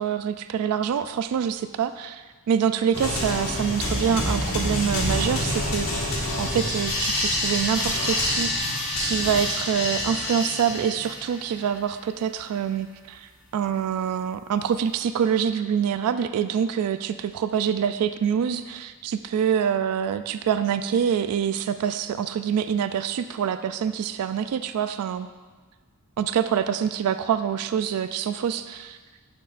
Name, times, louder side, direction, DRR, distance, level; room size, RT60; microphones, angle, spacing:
voice 1, 0.0-8.5 9.0-25.3 26.2-29.0, right 8 dB, 80° right, 11 dB, 0.3 m, -26 dB
sound 1, 2.9-11.4, left 1 dB, 65° left, 1.8 m, -27 dB
10.5 x 6.4 x 2.5 m, 1.4 s
head